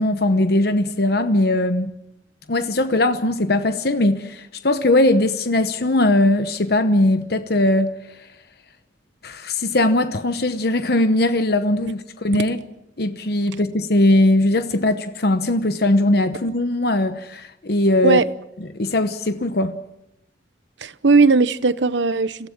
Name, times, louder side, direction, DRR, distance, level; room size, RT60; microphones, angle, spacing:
voice 1, 0.0-1.9 2.5-7.9 9.2-12.6 13.0-18.2 18.8-19.7, left 1 dB, 60° left, 1.0 m, -19 dB
voice 2, 20.8-22.5, right 4 dB, 85° right, 0.9 m, -17 dB
27.0 x 16.5 x 7.3 m
head